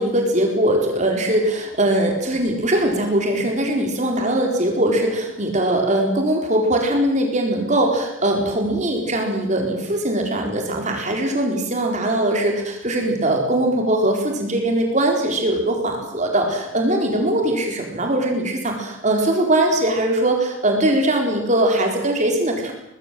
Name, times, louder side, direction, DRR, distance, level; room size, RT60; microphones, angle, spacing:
voice 1, 0.0-22.7, right 1 dB, 35° right, 2 dB, 4.3 m, -21 dB
24.5 x 21.0 x 7.7 m, 0.82 s
head